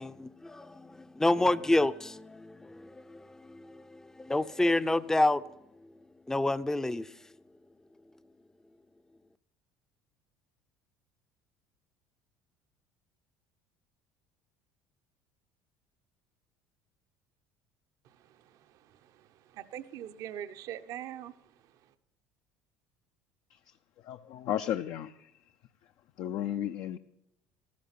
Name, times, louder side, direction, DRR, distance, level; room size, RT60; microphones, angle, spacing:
voice 1, 0.0-5.4 6.3-7.1, left 2 dB, 10° left, 0.5 m, -29 dB
voice 2, 18.0-21.9, right 11 dB, 60° right, 0.8 m, -44 dB
voice 3, 24.0-25.3 26.2-27.0, left 11 dB, 60° left, 0.5 m, -34 dB
14.5 x 13.5 x 5.8 m
supercardioid pair, 95°, 6 cm